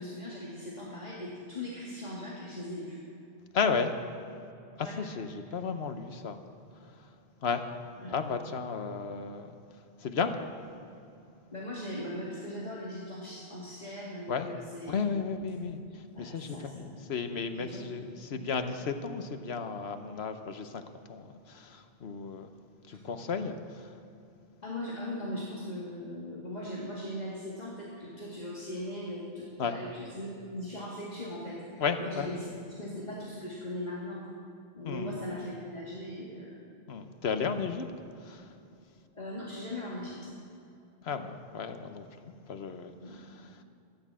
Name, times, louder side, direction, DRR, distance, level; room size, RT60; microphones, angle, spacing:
voice 1, 0.0-3.0 4.8-4.9 7.9-8.1 11.5-15.0 16.1-17.0 17.5-17.8 18.3-18.4 22.9-23.1 24.6-34.2 34.7-36.6 39.1-40.3 43.0-43.5, left 1 dB, 40° left, -6 dB, 2.1 m, -39 dB
voice 2, 3.5-3.9 4.8-6.4 7.4-7.6 8.1-9.5 10.0-10.3 14.3-14.5 14.9-15.8 16.2-20.8 21.1-22.5 22.9-23.5 23.8-23.9 29.6-29.8 31.8-32.4 34.8-35.2 36.9-37.8 38.2-38.5 41.0-43.2, left 5 dB, 75° left, 8 dB, 1.2 m, -33 dB
13.5 x 10.5 x 7.5 m, 2.6 s
omnidirectional pair, 1.1 m